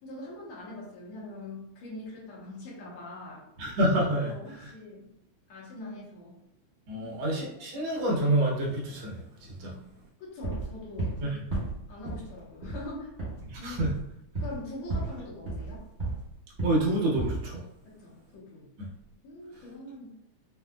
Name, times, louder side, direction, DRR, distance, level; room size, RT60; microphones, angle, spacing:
voice 1, 0.0-3.4 4.2-5.1 5.5-6.3 6.9-7.1 9.6-9.8 10.2-11.1 11.9-13.1 13.6-13.9 14.4-15.8 17.8-18.7 19.2-20.1, left 2 dB, 60° left, -6 dB, 1.5 m, -43 dB
voice 2, 3.6-4.3 4.6-4.7 6.9-9.2 9.6-9.7 11.2-11.4 13.5-13.9 16.6-17.6 18.8-18.9, right 1 dB, 70° right, -4 dB, 1.1 m, -27 dB
sound 1, 10.4-11.2 11.5-12.3 12.6-12.9 13.2-13.4 13.8-14.0 14.3-14.6 14.9-15.2 15.4-16.2 16.6-16.9 17.1-17.5, right 2 dB, 35° right, 1.0 m, -33 dB
5.0 x 2.5 x 2.3 m, 0.80 s
omnidirectional pair, 3.4 m